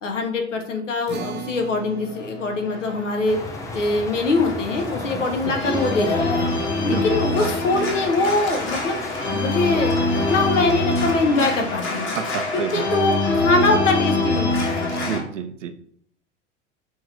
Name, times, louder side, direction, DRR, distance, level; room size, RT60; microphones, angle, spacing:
voice 1, 0.0-3.4 3.7-6.5 6.8-9.0 9.3-12.1 12.5-14.9, left 2 dB, 80° left, 4 dB, 0.9 m, -23 dB
sound 1, 1.1-7.7, right 5 dB, 30° right, 0.8 m, -41 dB
Organ, 2.0-15.2, left 2 dB, 30° left, 1.3 m, -25 dB
sound 2, 3.3-10.9, left 2 dB, 10° left, 0.5 m, -36 dB
voice 2, 5.1-5.6 6.9-7.2 12.1-12.9 15.1-15.8, right 8 dB, 80° right, 9 dB, 0.5 m, -30 dB
6.2 x 3.1 x 2.5 m, 0.65 s
figure-of-eight pair, 75°, 36 cm